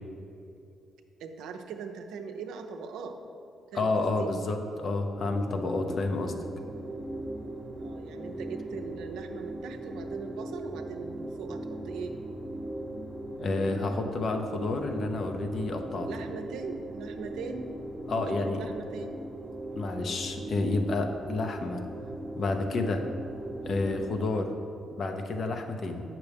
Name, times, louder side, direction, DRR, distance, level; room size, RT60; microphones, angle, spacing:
voice 1, 1.2-3.2 3.7-4.3 7.8-12.2 16.1-17.7 18.3-19.1, right 5 dB, 85° right, 5 dB, 0.5 m, -40 dB
voice 2, 3.7-6.3 13.4-16.1 18.1-18.7 19.8-21.8 22.4-23.0 23.6-24.5 25.0-26.0, left 3 dB, 55° left, 5 dB, 0.7 m, -30 dB
sound 1, 5.2-24.2, right 1 dB, 15° right, 0.7 m, -39 dB
8.1 x 5.9 x 3.5 m, 2.7 s
cardioid pair, 90°, 0 cm